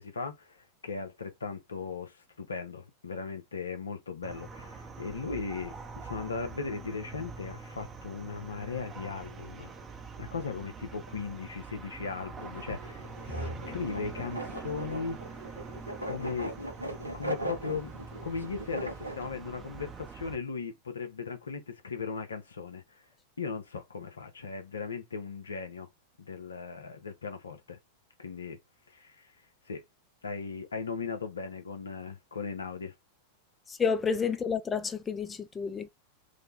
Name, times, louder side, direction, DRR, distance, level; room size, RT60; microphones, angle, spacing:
voice 1, 0.0-9.7 10.2-15.2 16.0-16.5 17.1-17.9 18.2-23.0 23.4-25.9 26.2-27.8 28.2-28.6 28.9-29.3 29.7-29.8 30.2-32.9, left 5 dB, 75° left, 0.8 m, -38 dB
sound 1, 4.2-20.4, right 4 dB, 20° right, 0.8 m, -45 dB
sound 2, 12.4-19.3, right 1 dB, 85° right, 0.6 m, -39 dB
sound 3, 12.7-15.1 15.8-15.9 16.5-16.6, equal, 35° left, 1.4 m, -43 dB
voice 2, 33.7-35.9, left 6 dB, 15° left, 0.5 m, -30 dB
3.7 x 2.2 x 3.4 m
figure-of-eight pair, 90°, 0 cm